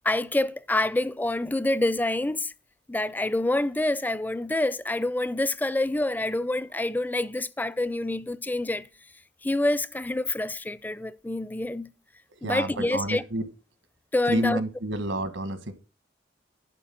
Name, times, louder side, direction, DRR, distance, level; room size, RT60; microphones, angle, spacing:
voice 1, 0.0-2.5 2.9-8.9 9.4-11.9 12.4-13.2 14.1-14.6, left 2 dB, 10° left, 0.4 m, -27 dB
voice 2, 12.4-13.5 14.2-15.7, right 1 dB, 80° right, 1.4 m, -29 dB
11.5 x 4.2 x 7.5 m
head